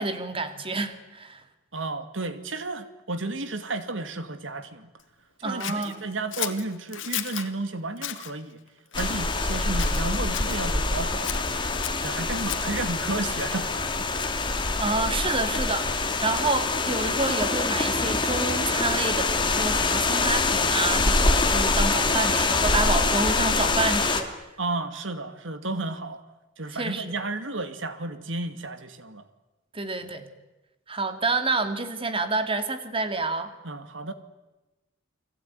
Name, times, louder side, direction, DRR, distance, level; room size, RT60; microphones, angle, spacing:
voice 1, 0.0-1.4 5.4-6.0 14.8-24.3 26.7-27.1 29.7-30.3 30.9-33.5, right 3 dB, 30° right, 8 dB, 2.4 m, -28 dB
voice 2, 1.7-4.9 5.4-8.6 9.0-11.4 12.0-13.9 24.6-26.2 26.6-29.2 33.6-34.1, right 2 dB, 80° right, 10 dB, 2.4 m, -32 dB
Scissors, 5.6-7.5 8.0-8.3 8.9-9.5 9.8-10.6 11.2-12.8, left 12 dB, 90° left, 2.0 m, -34 dB
sound 1, 8.9-24.2, left 3 dB, 25° left, 2.5 m, -25 dB
30.0 x 20.0 x 9.6 m, 1.1 s
head